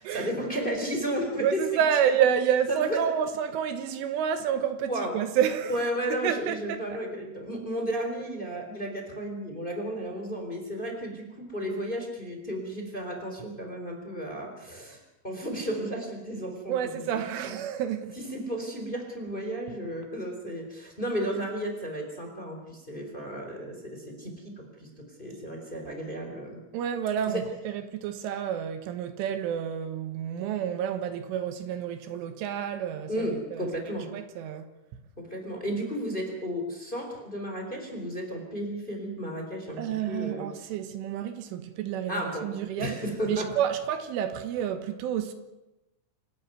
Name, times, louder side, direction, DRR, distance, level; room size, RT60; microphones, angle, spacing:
voice 1, 0.0-1.8 2.7-3.0 4.8-5.1 5.7-17.1 17.4-17.5 18.1-26.6 27.2-27.4 33.1-34.1 35.2-40.5 42.1-43.5, right 1 dB, 10° left, 3.2 m, -33 dB
voice 2, 1.4-5.7 6.2-6.8 16.7-18.2 26.7-33.7 34.1-35.0 39.8-43.0 43.3-45.3, right 9 dB, 80° right, 3.8 m, -29 dB
26.5 x 13.0 x 9.4 m
omnidirectional pair, 5.7 m